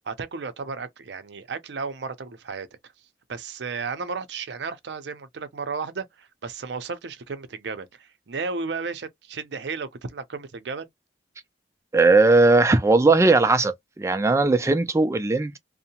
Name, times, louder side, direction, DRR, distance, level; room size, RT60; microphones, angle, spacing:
voice 1, 0.1-2.7 3.3-10.9, right 4 dB, 75° right, 0.5 m, -33 dB
voice 2, 11.9-15.6, right 3 dB, 15° right, 0.3 m, -18 dB
2.7 x 2.1 x 2.8 m
head